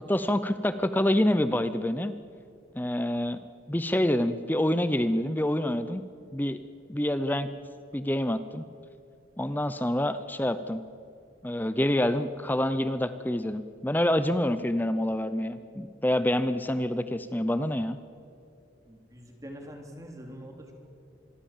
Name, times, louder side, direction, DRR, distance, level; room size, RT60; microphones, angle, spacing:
voice 1, 0.1-2.1 2.7-3.4 3.7-6.0 6.3-6.6 6.9-7.5 7.9-8.7 9.4-10.8 11.4-18.0, left 1 dB, 10° left, 12 dB, 0.7 m, -27 dB
voice 2, 18.8-20.7, equal, 20° right, 3 dB, 3.3 m, -44 dB
26.5 x 22.0 x 7.4 m, 2.5 s
head